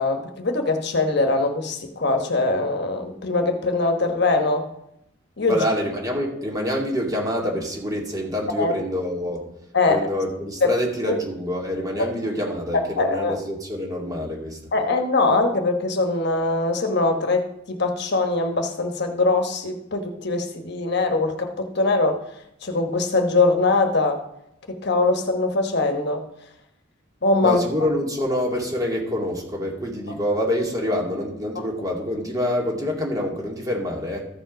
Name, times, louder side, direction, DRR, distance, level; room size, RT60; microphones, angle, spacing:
voice 1, 0.0-4.6 5.4-5.6 8.6-8.7 9.7-10.1 10.6-10.8 11.1-11.2 12.0-12.1 13.0-13.4 14.7-22.2 22.6-24.2 24.7-26.2 27.2-27.6, left 3 dB, 60° left, 5 dB, 1.1 m, -22 dB
voice 2, 5.5-9.4 9.9-14.6 27.4-34.3, left 1 dB, 20° right, -1 dB, 2.2 m, -26 dB
14.5 x 5.1 x 5.1 m, 0.79 s
head